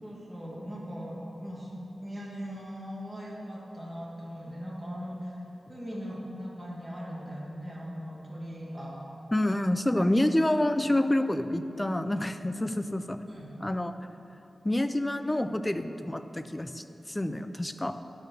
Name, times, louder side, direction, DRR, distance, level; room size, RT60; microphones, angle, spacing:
voice 1, 0.0-1.7 2.0-5.4 5.7-9.0 13.3-13.5, equal, 10° right, -6 dB, 1.9 m, -39 dB
voice 2, 9.3-13.2 13.6-13.9 14.6-18.0, left 1 dB, 15° left, 9 dB, 0.3 m, -28 dB
10.0 x 4.3 x 6.5 m, 3.0 s
wide cardioid pair, 135°, 0 cm